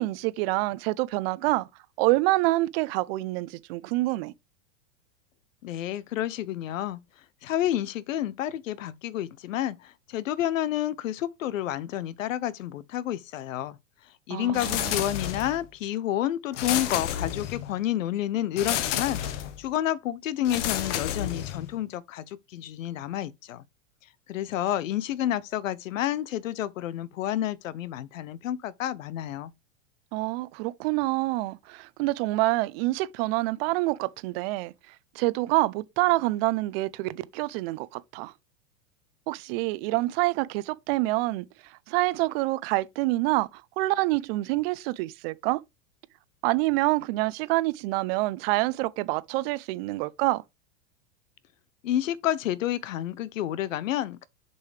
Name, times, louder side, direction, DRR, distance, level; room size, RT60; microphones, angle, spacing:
voice 1, 0.0-1.7 2.0-4.3 14.3-15.1 30.1-38.3 39.3-45.6 46.4-50.4, right 20 dB, 50° right, 0.6 m, -27 dB
voice 2, 5.6-7.0 7.4-13.8 14.3-23.6 24.3-29.5 51.8-54.3, left 12 dB, 90° left, 0.8 m, -30 dB
sound 1, 14.5-15.7 16.5-17.8 18.6-19.6 20.4-21.8, left 11 dB, 70° left, 1.2 m, -30 dB
6.7 x 5.4 x 3.3 m
supercardioid pair, 130°, 38 cm